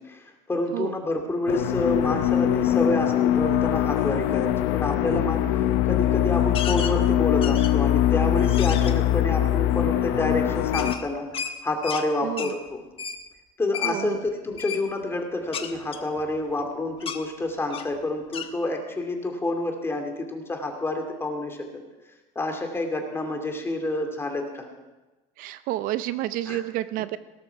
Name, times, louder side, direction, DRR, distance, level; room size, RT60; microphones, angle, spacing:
voice 1, 0.1-5.4 5.8-11.3 11.6-12.8 13.6-21.6 22.4-24.7 26.5-26.6, left 2 dB, 15° left, 3 dB, 2.6 m, -28 dB
sound 1, 1.5-10.9, left 12 dB, 70° left, 1.0 m, -22 dB
sound 2, 6.5-7.0 7.4-7.9 8.4-8.9 10.7-12.1 12.4-12.6 13.0-13.2 13.7-13.9 14.6-14.8 15.5-16.7 17.0-17.2 17.7-17.9 18.3-18.5, left 8 dB, 35° left, 1.2 m, -33 dB
voice 2, 12.2-12.5 13.8-14.2 25.4-27.2, right 14 dB, 60° right, 13 dB, 0.6 m, -30 dB
17.0 x 13.5 x 4.7 m, 1.1 s
supercardioid pair, 125°, 16 cm